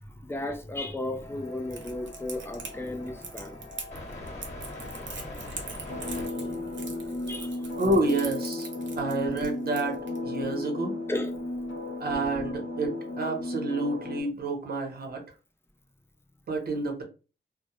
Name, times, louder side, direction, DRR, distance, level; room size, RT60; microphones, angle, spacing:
voice 1, 0.0-3.7 5.2-5.5 5.8-7.8 8.8-9.0 11.1-11.3, left 1 dB, 10° left, 0.4 m, -36 dB
sound 1, 1.2-6.3, left 1 dB, 35° left, 1.0 m, -42 dB
Crackle, 1.7-10.2, right 5 dB, 85° right, 0.7 m, -42 dB
sound 2, 5.9-14.2, left 2 dB, 75° left, 0.7 m, -34 dB
voice 2, 7.8-8.7 9.0-10.9 12.0-15.2 16.5-17.0, right 2 dB, 55° right, 0.8 m, -29 dB
2.2 x 2.0 x 2.9 m
wide cardioid pair, 130°, 19 cm